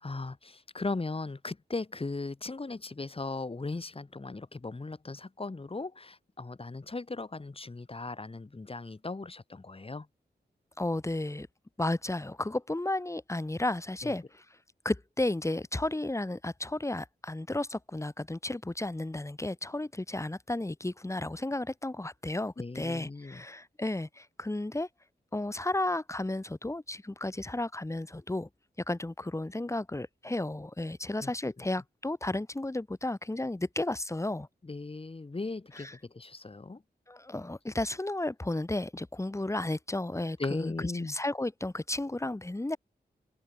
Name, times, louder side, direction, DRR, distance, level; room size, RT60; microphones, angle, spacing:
voice 1, 0.0-10.1 14.0-14.1 22.6-23.4 31.2-31.3 34.6-36.8 40.4-41.1, left 3 dB, 35° left, 4.4 m, -38 dB
voice 2, 10.8-11.5 11.8-14.4 14.8-24.9 25.3-28.5 28.9-34.5 35.8-35.9 37.1-42.8, left 2 dB, 15° left, 2.3 m, -33 dB
wide cardioid pair, 100°, 17 cm